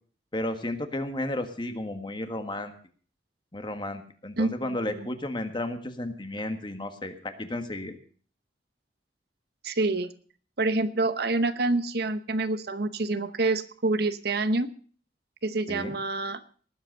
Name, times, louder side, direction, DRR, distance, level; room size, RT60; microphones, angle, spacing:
voice 1, 0.3-2.7 3.5-8.0 15.7-16.0, left 1 dB, 25° left, 7 dB, 1.6 m, -33 dB
voice 2, 4.4-5.1 9.6-10.1 10.6-14.7 15.4-16.4, right 2 dB, 60° right, 12 dB, 0.9 m, -27 dB
19.0 x 8.1 x 6.6 m, 0.43 s
head